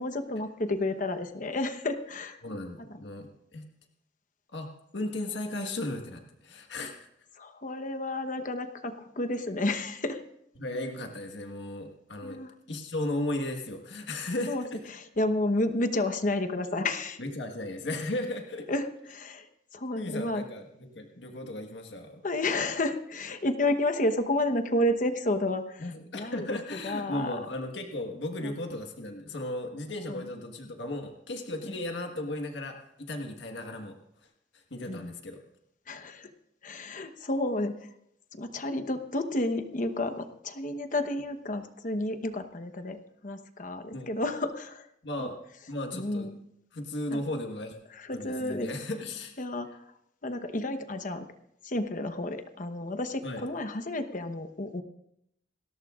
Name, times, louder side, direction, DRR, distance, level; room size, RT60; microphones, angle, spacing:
voice 1, 0.0-2.4 7.4-10.2 12.2-12.5 14.5-17.2 18.7-20.4 22.2-26.6 26.8-27.4 28.4-28.5 30.1-30.2 31.6-31.8 34.9-35.2 35.9-36.3 36.6-37.9 38.3-43.0 43.2-44.9 45.2-45.3 45.9-46.4 47.1-47.2 47.9-48.7 49.4-49.8 50.2-51.3 51.6-54.8, left 1 dB, 45° left, 8 dB, 1.0 m, -31 dB
voice 2, 2.4-3.7 4.5-6.9 10.6-12.4 12.7-14.5 17.2-18.7 19.9-22.2 25.8-33.9 34.5-35.4 43.9-44.1 45.0-45.3 45.7-46.3 46.7-47.8 48.1-49.3 53.2-53.4, left 1 dB, 85° left, 3 dB, 1.5 m, -35 dB
29.0 x 13.5 x 2.5 m, 0.78 s
head